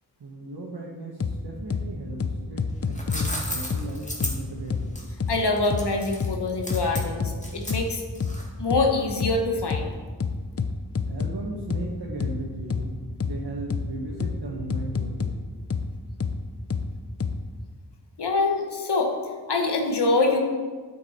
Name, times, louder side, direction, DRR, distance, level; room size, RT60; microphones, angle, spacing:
voice 1, 0.2-5.0 11.0-15.4, right 2 dB, 80° right, -4 dB, 1.4 m, -37 dB
sound 1, 1.2-1.3 1.7-1.8 2.2-3.3 3.7-3.8 4.2-4.3 4.7-4.8 5.2-5.3 5.7-5.8 6.2-6.3 6.7-7.3 7.7-7.8 8.2-8.3 8.7-8.8 9.2-9.3 9.7-9.8 10.2-11.3 11.7-11.8 12.2-12.3 12.7-12.8 13.2-13.3 13.7-13.8 14.2-14.3 14.7-15.3 15.7-15.8 16.2-16.3 16.7-16.8 17.2-17.3, left 6 dB, 35° left, 0.6 m, -27 dB
sound 2, 2.7-8.7, left 1 dB, 20° left, 2.0 m, -35 dB
voice 2, 5.3-8.0 8.6-9.9 18.2-19.1 19.5-20.4, left 3 dB, 85° left, 2 dB, 1.3 m, -24 dB
9.5 x 7.4 x 4.4 m, 1.5 s
cardioid pair, 50°, 39 cm